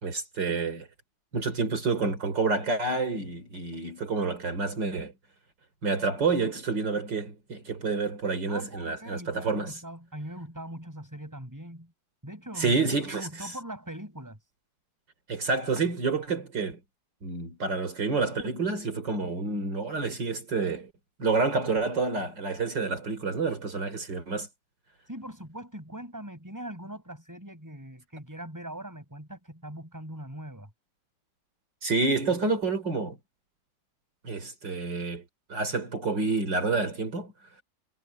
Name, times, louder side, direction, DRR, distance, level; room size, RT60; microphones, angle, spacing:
voice 1, 0.0-0.9 1.3-5.1 5.8-9.8 12.6-13.3 15.3-16.8 17.2-20.9 21.2-24.5 31.8-33.2 34.2-35.2 35.5-37.3, right 4 dB, 65° right, 4.1 m, -28 dB
voice 2, 8.5-11.9 12.2-14.4 25.1-30.7, right 1 dB, 10° right, 5.6 m, -41 dB
omnidirectional pair, 2.1 m